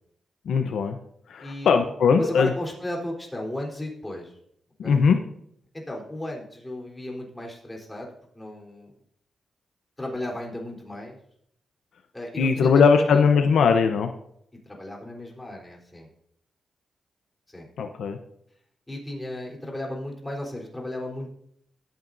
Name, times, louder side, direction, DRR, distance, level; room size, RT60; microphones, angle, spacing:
voice 1, 0.5-1.0 1.3-2.5 4.8-5.2 12.4-14.1 17.8-18.2, left 5 dB, 80° left, 6 dB, 0.8 m, -20 dB
voice 2, 1.4-4.3 4.8-5.0 5.7-8.1 8.3-8.9 10.0-11.2 12.1-13.2 14.7-16.1 17.5-17.7 18.9-21.3, left 1 dB, 15° left, -1 dB, 3.7 m, -35 dB
21.5 x 9.1 x 2.7 m, 0.71 s
cardioid pair, 90°, 0 cm